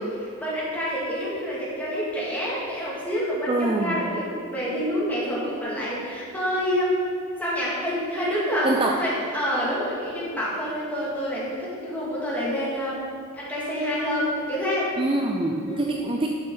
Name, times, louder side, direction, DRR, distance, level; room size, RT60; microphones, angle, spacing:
voice 1, 0.2-7.1 7.4-13.1 13.3-15.0 15.7-15.8, equal, 10° left, -7 dB, 2.2 m, -27 dB
voice 2, 3.5-4.0 8.6-9.0 15.0-16.3, right 2 dB, 25° right, 0 dB, 0.5 m, -25 dB
11.0 x 6.6 x 3.9 m, 2.4 s
head